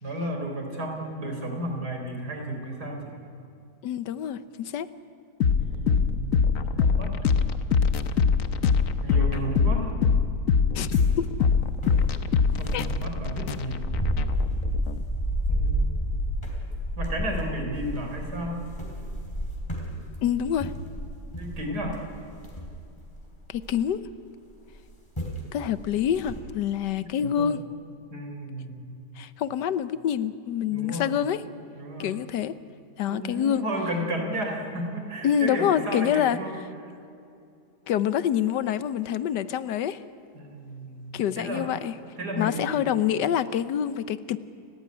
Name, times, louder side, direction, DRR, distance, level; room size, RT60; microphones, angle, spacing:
voice 1, 0.0-3.2 5.6-7.4 9.0-9.9 12.6-13.9 15.5-16.2 17.0-18.6 21.4-22.0 27.2-27.5 28.1-28.8 30.7-31.2 31.8-32.2 33.1-36.6 40.3-41.6 42.2-42.9, right 1 dB, 65° right, 2 dB, 4.7 m, -33 dB
voice 2, 3.8-4.9 10.7-11.3 12.7-12.9 20.2-20.7 23.5-24.0 25.5-27.6 29.2-31.4 32.0-32.6 33.0-33.6 35.2-36.4 37.9-40.0 41.1-41.9 42.4-44.4, left 9 dB, 80° left, 15 dB, 1.4 m, -26 dB
sound 1, 5.4-15.0, left 6 dB, 55° left, 1.2 m, -23 dB
sound 2, 10.9-24.0 24.7-24.9 25.2-25.4 25.8-26.4, equal, 15° left, 4.3 m, -31 dB
30.0 x 14.5 x 9.7 m, 2.5 s
omnidirectional pair, 1.8 m